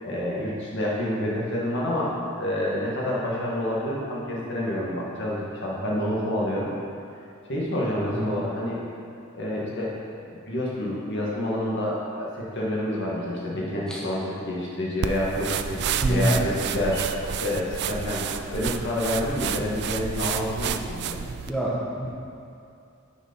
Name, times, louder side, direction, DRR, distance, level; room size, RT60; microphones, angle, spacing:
voice 1, 0.0-6.7 7.5-8.8 9.3-9.9 10.3-15.8 16.1-21.3, left 1 dB, 60° left, -5 dB, 1.8 m, -28 dB
sound 1, 15.0-21.5, right 7 dB, 55° right, 0.3 m, -30 dB
voice 2, 21.5-22.1, right 1 dB, 5° left, -6 dB, 0.9 m, -26 dB
6.8 x 5.4 x 5.2 m, 2.6 s
head